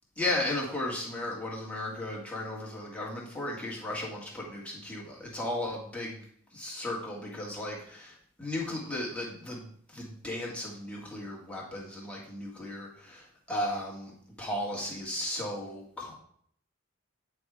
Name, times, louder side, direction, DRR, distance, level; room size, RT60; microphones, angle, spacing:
voice 1, 0.2-6.1 6.5-14.1 14.4-16.1, left 1 dB, 5° left, -4 dB, 1.7 m, -35 dB
9.1 x 3.5 x 4.8 m, 0.63 s
head